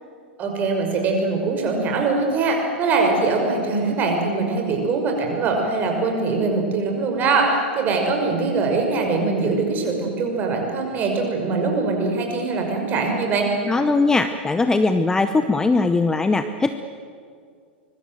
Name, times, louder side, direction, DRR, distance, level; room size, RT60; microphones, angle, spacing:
voice 1, 0.4-13.5, right 3 dB, 30° right, 2 dB, 5.8 m, -22 dB
voice 2, 13.7-16.8, left 3 dB, 10° left, 10 dB, 0.9 m, -20 dB
25.0 x 22.5 x 7.8 m, 2.2 s
figure-of-eight pair, 95°, 6 cm